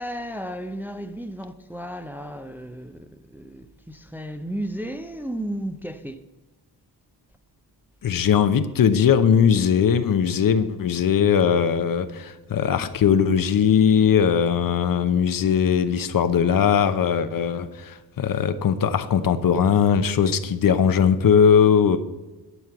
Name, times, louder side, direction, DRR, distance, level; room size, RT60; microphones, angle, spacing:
voice 1, 0.0-6.2, right 1 dB, 5° right, 0.6 m, -34 dB
voice 2, 8.0-22.0, left 7 dB, 50° left, 0.8 m, -19 dB
11.0 x 4.5 x 8.1 m
cardioid pair, 75°, 43 cm